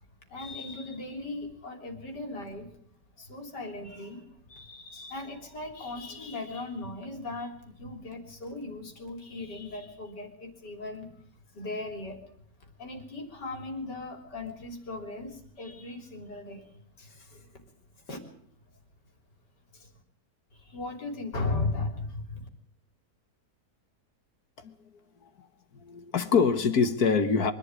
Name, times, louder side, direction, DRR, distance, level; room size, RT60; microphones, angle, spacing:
voice 1, 0.3-2.7 3.2-4.2 4.5-11.2 11.5-12.3 12.6-17.6 18.1-18.2 19.7-19.9 20.5-22.5, left 2 dB, 80° left, 4 dB, 4.1 m, -37 dB
voice 2, 25.7-27.5, left 5 dB, 65° left, 10 dB, 1.9 m, -25 dB
24.5 x 11.5 x 9.7 m, 0.66 s
omnidirectional pair, 1.8 m